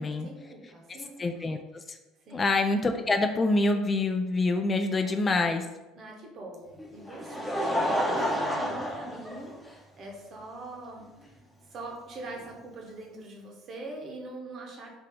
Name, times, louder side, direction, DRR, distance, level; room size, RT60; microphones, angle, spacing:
voice 1, 0.0-1.3 2.3-2.5 5.0-5.5 6.0-9.5 10.0-11.1 11.7-15.0, right 2 dB, 40° right, 0 dB, 1.0 m, -43 dB
voice 2, 1.2-2.0 2.3-5.7, left 2 dB, 25° left, 6 dB, 0.3 m, -26 dB
Laughter, 6.8-10.0 10.8-10.9 12.4-12.5, equal, 10° left, 0.7 m, -30 dB
3.4 x 2.8 x 4.7 m, 1.1 s
figure-of-eight pair, 60°, 0 cm